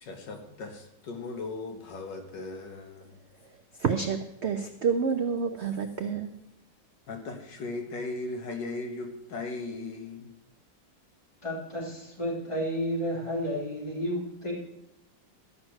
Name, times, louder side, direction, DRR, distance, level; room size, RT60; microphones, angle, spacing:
voice 1, 0.0-3.2 7.1-10.4, left 3 dB, 70° left, 4 dB, 1.9 m, -37 dB
voice 2, 3.4-6.4, right 6 dB, 60° right, 7 dB, 0.7 m, -29 dB
voice 3, 11.4-14.5, equal, 15° left, -4 dB, 3.7 m, -31 dB
13.0 x 6.0 x 7.9 m, 0.85 s
omnidirectional pair, 2.0 m